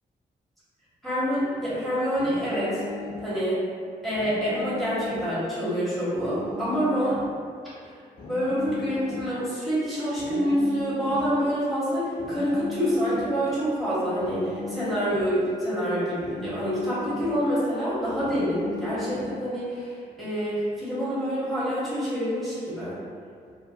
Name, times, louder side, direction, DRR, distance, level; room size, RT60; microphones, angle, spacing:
voice 1, 1.0-2.8 3.2-3.6 4.0-7.2 8.3-23.0, equal, ahead, -12 dB, 1.3 m, -27 dB
sound 1, 2.2-3.3 4.2-5.3 6.2-7.3 8.2-9.3 10.2-11.3 12.2-13.3 14.2-15.3 16.2-17.3 18.2-19.3, left 4 dB, 50° left, 0.5 m, -37 dB
2.8 x 2.1 x 2.7 m, 2.2 s
supercardioid pair, 40°, 20 cm